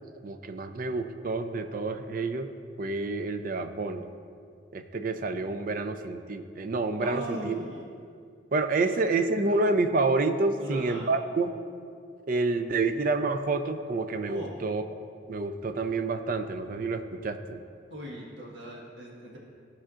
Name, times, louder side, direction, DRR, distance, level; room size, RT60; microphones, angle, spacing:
voice 1, 0.2-2.5 2.8-4.1 4.7-7.6 8.5-11.5 12.3-14.8 15.3-17.6, right 3 dB, 45° right, 8 dB, 0.5 m, -28 dB
voice 2, 7.0-7.9 8.8-9.0 9.4-9.6 10.6-11.1 14.3-14.5 17.9-19.4, right 1 dB, 75° right, -3 dB, 1.4 m, -39 dB
15.5 x 5.6 x 2.5 m, 2.3 s
head